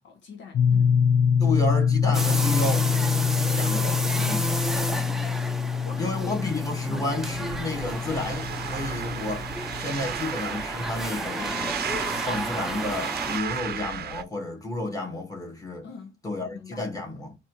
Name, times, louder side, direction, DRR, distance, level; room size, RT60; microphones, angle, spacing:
voice 1, 0.0-1.0 5.6-6.5 6.9-7.1 15.8-16.9, left 5 dB, 65° left, 1.0 m, -43 dB
sound 1, 0.5-10.1, left 7 dB, 45° left, 0.4 m, -25 dB
voice 2, 1.4-2.9 3.5-4.5 6.0-9.5 9.8-11.8 12.2-15.9 16.2-17.4, left 1 dB, 15° left, 1.9 m, -31 dB
sound 2, 2.1-13.4, right 1 dB, ahead, 0.6 m, -32 dB
sound 3, 7.2-14.2, right 9 dB, 50° right, 0.6 m, -34 dB
4.1 x 2.7 x 4.7 m
cardioid pair, 90°, 20 cm